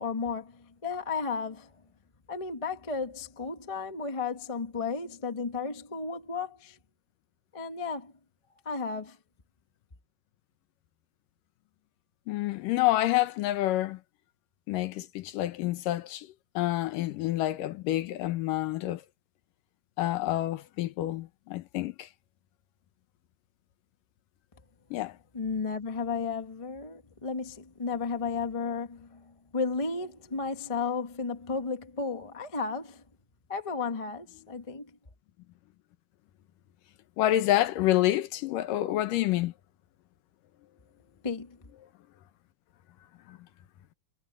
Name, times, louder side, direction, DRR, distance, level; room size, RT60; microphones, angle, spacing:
voice 1, 0.0-1.7 2.3-6.8 7.5-8.1 8.6-9.2 25.3-33.0 33.5-34.9 41.2-41.6, left 4 dB, 40° left, 0.4 m, -33 dB
voice 2, 12.3-14.0 14.7-19.0 20.0-22.1 24.9-25.2 37.2-39.5 43.3-43.4, left 15 dB, 85° left, 2.7 m, -28 dB
omnidirectional pair, 3.8 m